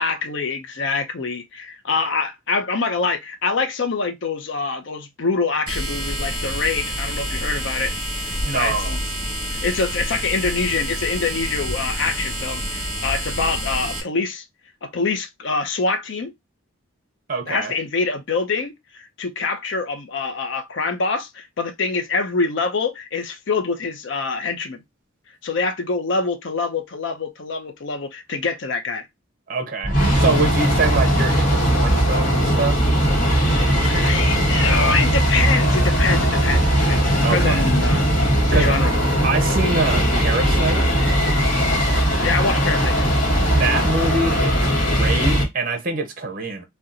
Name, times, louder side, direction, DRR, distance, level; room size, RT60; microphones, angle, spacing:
voice 1, 0.0-7.9 8.2-9.0 9.6-14.4 14.8-16.3 17.5-24.8 25.4-29.1 33.4-38.1 38.5-38.9 42.2-43.1, left 4 dB, 65° left, 0.6 m, -25 dB
sound 1, 5.7-14.0, equal, 20° right, 1.2 m, -28 dB
voice 2, 8.4-9.0 17.3-17.8 29.5-32.8 37.2-37.6 38.5-38.8 39.2-40.9 43.5-46.6, right 3 dB, 40° right, 0.6 m, -24 dB
sound 2, 29.8-45.4, equal, 40° left, 1.1 m, -19 dB
2.7 x 2.2 x 3.7 m
head